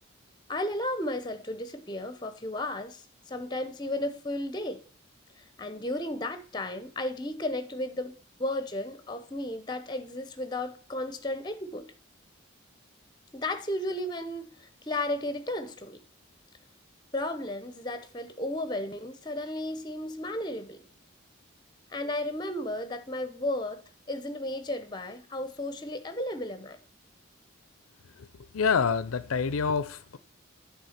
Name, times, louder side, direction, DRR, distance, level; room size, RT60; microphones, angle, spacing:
voice 1, 0.5-3.0 3.3-4.8 5.4-11.8 13.3-16.0 17.1-20.8 21.9-26.8, left 1 dB, 20° left, 0.7 m, -34 dB
voice 2, 28.5-30.2, left 5 dB, 90° left, 0.5 m, -26 dB
9.3 x 3.6 x 5.7 m
head